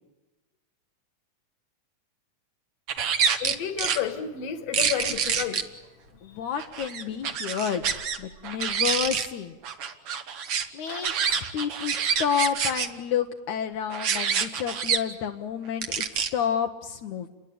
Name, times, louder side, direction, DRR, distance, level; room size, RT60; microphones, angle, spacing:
sound 1, 2.9-4.0 4.7-5.6 6.6-8.2 8.4-9.3 9.6-12.9 13.9-15.0 15.8-16.3, right 7 dB, 55° right, 2.2 m, -27 dB
voice 1, 3.4-5.6, left 9 dB, 60° left, 2.7 m, -31 dB
voice 2, 6.2-7.8 8.2-9.6 10.7-17.3, left 8 dB, 75° left, 2.4 m, -30 dB
29.5 x 22.0 x 8.7 m
omnidirectional pair, 3.5 m